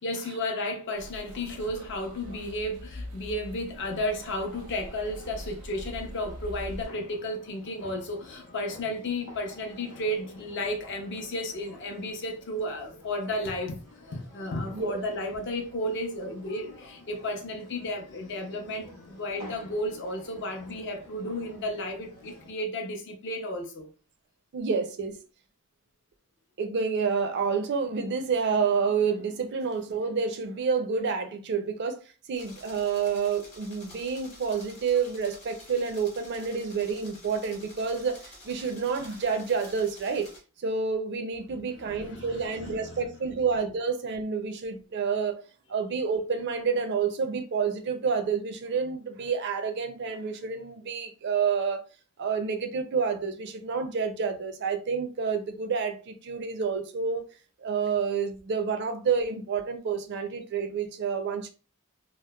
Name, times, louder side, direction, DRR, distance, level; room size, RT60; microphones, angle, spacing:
voice 1, 0.0-13.8 14.1-23.9 41.5-43.0, left 1 dB, 55° left, 0.5 m, -33 dB
sound 1, 0.9-6.8, equal, 90° right, 0.7 m, -43 dB
sound 2, 3.7-22.5, left 1 dB, 90° left, 0.7 m, -50 dB
voice 2, 24.5-25.2 26.6-32.0 32.3-40.3 40.6-45.4 45.7-51.8 52.2-57.2 57.6-61.5, right 5 dB, 50° right, 0.4 m, -29 dB
sound 3, 32.3-40.4, left 1 dB, 30° left, 1.0 m, -50 dB
2.8 x 2.0 x 2.2 m
head